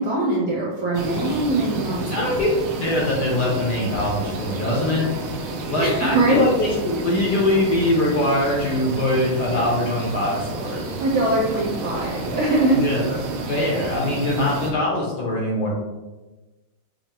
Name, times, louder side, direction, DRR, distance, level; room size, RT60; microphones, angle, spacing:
voice 1, 0.0-2.1 5.8-6.4 11.0-12.8, right 2 dB, 70° right, -6 dB, 0.9 m, -22 dB
sound 1, 0.9-14.7, right 2 dB, 90° right, 1.5 m, -31 dB
voice 2, 2.1-5.1 5.7-10.8 12.8-13.0 13.5-15.7, left 1 dB, 65° left, -3 dB, 1.1 m, -22 dB
5.6 x 2.0 x 2.8 m, 1.1 s
omnidirectional pair, 2.3 m